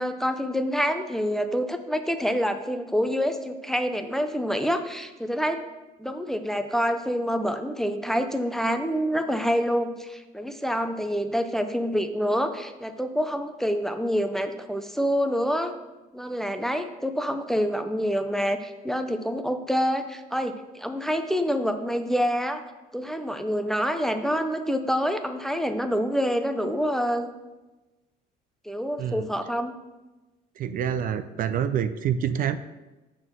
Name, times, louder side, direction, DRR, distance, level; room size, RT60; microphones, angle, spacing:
voice 1, 0.0-5.6 6.0-15.7 16.1-22.6 22.9-27.3 28.7-29.7, equal, ahead, 7 dB, 0.5 m, -27 dB
voice 2, 30.6-32.5, right 8 dB, 55° right, 11 dB, 0.4 m, -27 dB
7.0 x 4.3 x 6.0 m, 1.1 s
cardioid pair, 110°, 17 cm